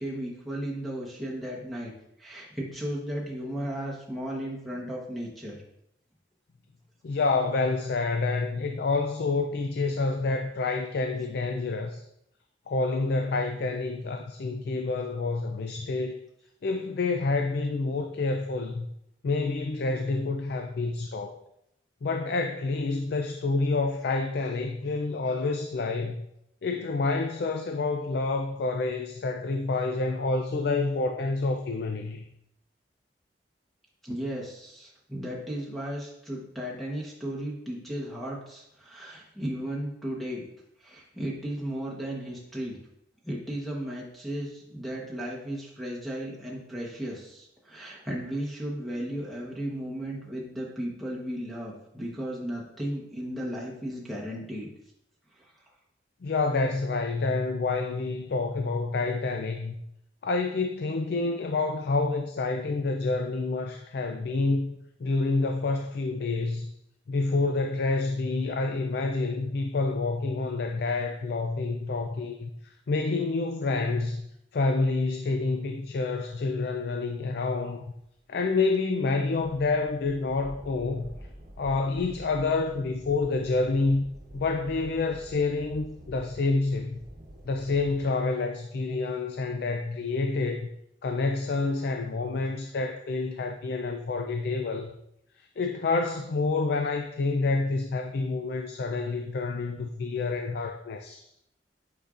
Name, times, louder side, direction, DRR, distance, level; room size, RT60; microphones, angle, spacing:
voice 1, 0.0-1.9 2.2-5.6 34.0-40.5 40.8-42.8 43.2-54.7 55.3-55.5 88.9-89.0, right 1 dB, ahead, 1.1 m, -35 dB
voice 2, 7.0-12.0 12.7-16.2 16.6-18.9 19.2-21.4 22.0-26.3 26.6-32.2 56.2-59.7 60.2-64.7 65.0-66.7 67.1-74.2 74.5-77.8 78.3-81.1 81.6-84.0 84.3-87.0 87.5-90.7 91.0-94.9 95.4-101.3, left 3 dB, 60° left, 0.4 m, -28 dB
sound 1, 79.3-88.1, right 1 dB, 55° right, 1.0 m, -47 dB
7.9 x 4.9 x 2.5 m
head